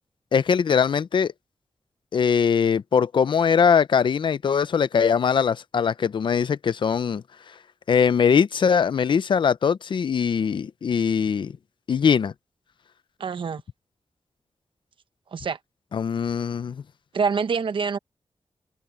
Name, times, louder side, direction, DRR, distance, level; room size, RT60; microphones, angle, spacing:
voice 1, 0.3-1.3 2.1-7.2 7.9-11.6 11.9-12.3 15.9-16.8, left 6 dB, 60° left, 0.6 m, -21 dB
voice 2, 13.2-13.6 15.3-15.6 17.1-18.0, right 5 dB, 65° right, 1.0 m, -25 dB
wide cardioid pair, 145°, 9 cm